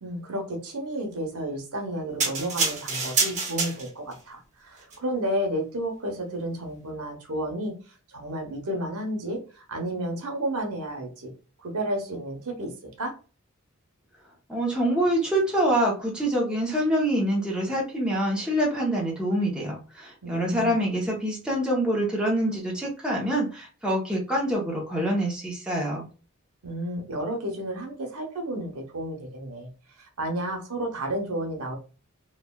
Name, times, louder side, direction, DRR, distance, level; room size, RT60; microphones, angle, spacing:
voice 1, 0.0-7.8 8.1-11.3 11.6-12.7 13.0-13.1 20.2-20.8 26.6-29.7 30.0-31.8, right 1 dB, 80° right, 2 dB, 0.9 m, -31 dB
sound 1, 2.2-4.2 4.8-5.0, right 4 dB, 35° right, 0.8 m, -27 dB
voice 2, 14.5-26.1, right 1 dB, 5° right, -3 dB, 0.7 m, -25 dB
3.1 x 2.2 x 2.2 m, 0.35 s
head